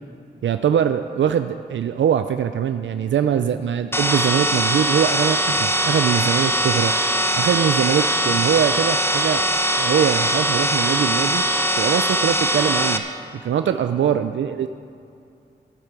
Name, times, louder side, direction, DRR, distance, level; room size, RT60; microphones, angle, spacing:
voice 1, 0.4-6.9 7.4-9.4 9.8-11.4 11.8-13.0 13.4-14.7, right 9 dB, 85° right, 9 dB, 0.4 m, -22 dB
sound 1, 3.9-13.0, equal, 10° left, 0.9 m, -21 dB
14.5 x 8.3 x 6.7 m, 2.6 s
cardioid pair, 60°, 19 cm